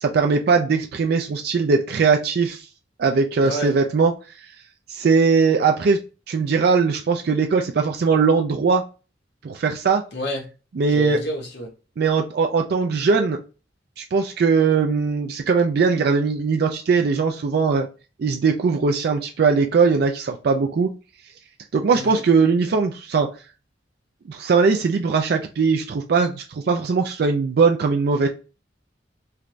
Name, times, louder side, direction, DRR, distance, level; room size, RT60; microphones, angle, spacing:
voice 1, 0.0-2.7 3.0-4.1 4.9-6.0 6.3-8.8 9.4-10.0 10.8-11.2 12.0-13.4 14.0-17.9 18.2-20.9 21.7-23.3 24.3-28.3, right 5 dB, 55° right, 0.3 m, -20 dB
voice 2, 3.4-3.7 10.1-10.4 10.9-11.7 21.9-22.2, equal, 60° left, 1.1 m, -29 dB
3.3 x 2.5 x 3.1 m
head